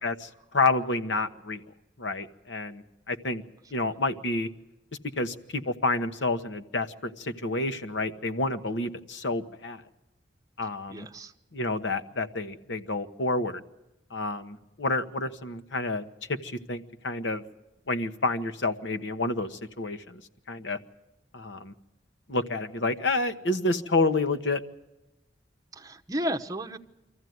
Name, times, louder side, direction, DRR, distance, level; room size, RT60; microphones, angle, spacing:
voice 1, 0.0-1.6 2.0-3.4 3.7-4.5 5.2-9.8 10.6-11.1 11.5-13.6 14.1-16.0 16.3-17.4 17.9-20.2 20.5-20.8 21.3-21.7 22.3-24.6, left 2 dB, 75° left, 8 dB, 1.2 m, -29 dB
voice 2, 10.9-11.3 25.7-26.8, equal, 20° right, 5 dB, 0.9 m, -33 dB
24.5 x 14.5 x 9.5 m, 0.99 s
head